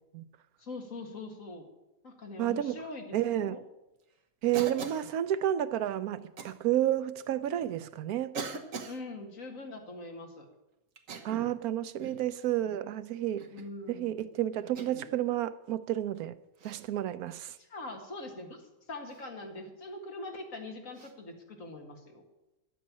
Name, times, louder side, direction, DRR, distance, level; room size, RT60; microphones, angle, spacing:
voice 1, 0.6-1.7 2.0-3.6 8.8-10.5 13.5-14.2 17.6-22.2, left 2 dB, 65° left, 2.3 m, -43 dB
voice 2, 2.4-2.8 3.1-3.6 4.4-8.4 11.2-13.5 13.9-16.4 16.6-17.5, right 12 dB, 85° right, 1.2 m, -31 dB
Cough, 4.5-5.1 6.4-6.6 7.5-7.6 8.3-9.0 11.0-11.6 12.0-12.3 13.4-13.7 14.8-15.1 16.6-16.9 19.1-19.2 20.9-21.1, right 5 dB, 65° right, 1.5 m, -41 dB
12.0 x 8.6 x 8.4 m
omnidirectional pair, 1.5 m